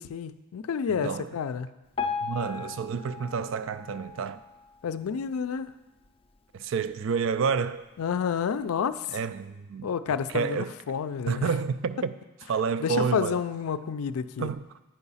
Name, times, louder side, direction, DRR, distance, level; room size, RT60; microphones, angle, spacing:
voice 1, 0.0-1.7 4.8-5.7 8.0-9.0 9.8-11.5 12.8-14.5, left 7 dB, 90° left, 0.4 m, -29 dB
voice 2, 0.9-1.3 2.2-4.4 6.5-7.9 9.1-9.9 10.3-10.8 11.3-12.1 12.5-13.4 14.4-14.7, right 5 dB, 65° right, 0.3 m, -29 dB
Piano, 2.0-5.1 5.6-5.7 6.0-6.1 6.9-7.0 7.5-7.6, left 5 dB, 25° left, 0.4 m, -36 dB
9.1 x 4.8 x 5.5 m
head